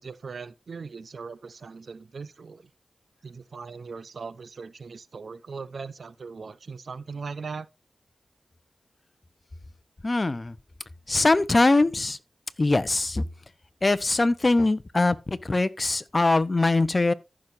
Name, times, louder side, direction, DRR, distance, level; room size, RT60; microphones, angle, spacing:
voice 1, 0.0-2.7 3.2-7.7, right 5 dB, 75° right, 0.6 m, -39 dB
voice 2, 10.0-10.6 11.1-12.2 12.6-13.2 13.8-17.1, left 2 dB, 40° left, 0.9 m, -22 dB
14.5 x 6.3 x 2.7 m
cardioid pair, 55°, 0 cm